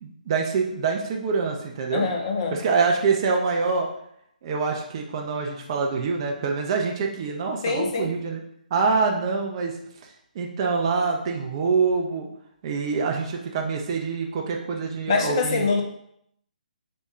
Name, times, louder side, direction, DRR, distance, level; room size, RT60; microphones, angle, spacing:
voice 1, 0.0-2.1 2.5-3.9 4.4-8.4 8.7-9.7 10.3-12.3 12.6-15.7, right 4 dB, 35° right, 1 dB, 0.4 m, -25 dB
voice 2, 1.9-2.6 7.6-8.1 15.1-15.8, left 4 dB, 35° left, 3 dB, 0.5 m, -24 dB
3.4 x 2.2 x 3.0 m, 0.73 s
figure-of-eight pair, 140°, 5 cm